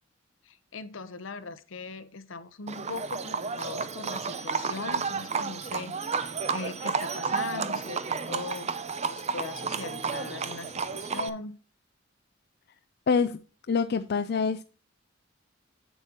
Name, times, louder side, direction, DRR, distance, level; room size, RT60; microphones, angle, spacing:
voice 1, 0.4-8.7 9.1-11.6, left 3 dB, 75° left, 14 dB, 0.8 m, -40 dB
Livestock farm animals working animals, 2.7-11.3, right 5 dB, 35° right, 0.5 m, -32 dB
voice 2, 13.1-13.4 13.7-14.6, left 5 dB, 55° left, 9 dB, 0.4 m, -25 dB
8.2 x 7.3 x 2.9 m, 0.35 s
head